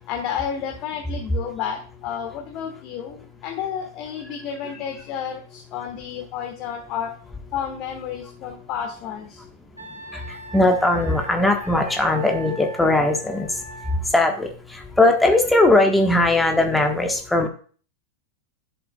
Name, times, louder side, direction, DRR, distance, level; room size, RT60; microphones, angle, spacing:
voice 1, 0.1-7.1 7.5-9.4, left 8 dB, 40° left, 3 dB, 1.4 m, -31 dB
Wind instrument woodwind instrument, 9.8-14.0, right 3 dB, 90° right, 2.8 m, -40 dB
voice 2, 10.1-17.5, left 2 dB, 5° left, 3 dB, 1.4 m, -19 dB
11.0 x 7.6 x 2.4 m, 0.41 s
figure-of-eight pair, 90°, 0 cm